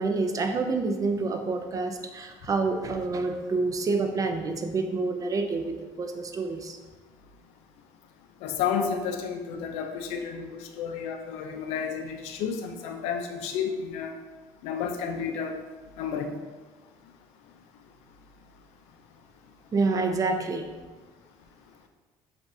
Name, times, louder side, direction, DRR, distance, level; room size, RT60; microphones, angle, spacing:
voice 1, 0.0-6.8 19.7-20.7, right 3 dB, 35° right, 5 dB, 0.5 m, -28 dB
voice 2, 8.4-14.1 14.6-15.6 16.0-16.3, left 6 dB, 80° left, 5 dB, 0.5 m, -31 dB
6.8 x 2.5 x 2.6 m, 1.3 s
supercardioid pair, 90°, 10 cm